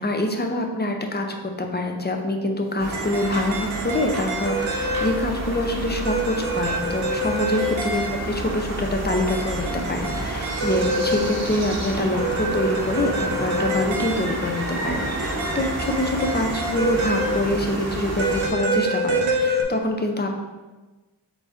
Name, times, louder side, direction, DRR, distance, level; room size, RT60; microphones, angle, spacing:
voice 1, 0.0-20.4, left 1 dB, 20° left, 3 dB, 0.6 m, -25 dB
sound 1, 2.8-18.5, right 1 dB, 35° right, 0.8 m, -30 dB
sound 2, 2.9-5.4 6.0-8.5 9.1-11.7 12.2-14.5 15.2-17.9 18.2-19.6, right 1 dB, 85° right, 0.7 m, -27 dB
3.9 x 3.5 x 3.5 m, 1.2 s
wide cardioid pair, 50°, 46 cm